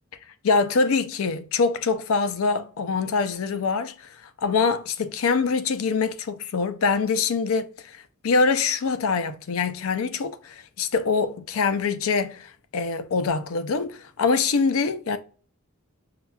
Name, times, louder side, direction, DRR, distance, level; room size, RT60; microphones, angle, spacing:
voice 1, 0.4-15.2, left 4 dB, 70° left, 0.4 m, -24 dB
5.6 x 2.3 x 2.3 m
head